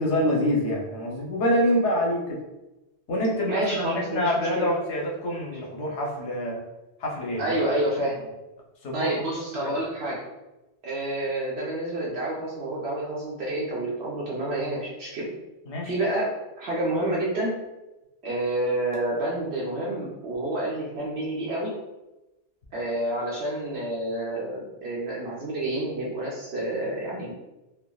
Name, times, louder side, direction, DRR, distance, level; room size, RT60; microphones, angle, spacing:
voice 1, 0.0-2.4 3.1-6.6 7.0-7.5 8.8-9.1 9.6-9.7 15.7-15.9, equal, 85° left, -2 dB, 1.0 m, -26 dB
voice 2, 3.5-4.7 7.4-8.2 8.9-10.2 10.8-15.3 15.8-17.5 18.2-21.7 22.7-27.3, right 1 dB, 70° right, -5 dB, 0.9 m, -29 dB
3.4 x 2.1 x 2.2 m, 1.0 s
omnidirectional pair, 1.1 m